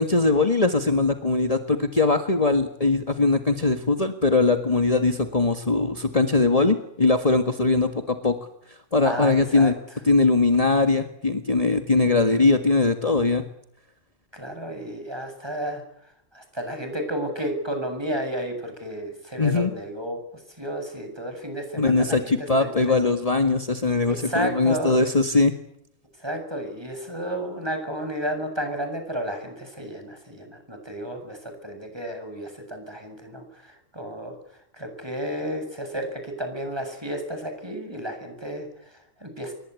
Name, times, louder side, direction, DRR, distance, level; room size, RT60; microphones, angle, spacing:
voice 1, 0.0-8.4 8.7-9.8 10.0-13.4 19.4-19.7 21.8-25.6, left 3 dB, 30° left, 6 dB, 1.8 m, -21 dB
voice 2, 9.0-9.7 14.3-15.8 16.3-20.2 20.6-22.3 22.6-23.0 24.2-25.0 26.2-34.3 34.7-39.5, right 1 dB, 20° right, 5 dB, 7.7 m, -32 dB
28.0 x 23.0 x 8.5 m, 0.72 s
omnidirectional pair, 1.3 m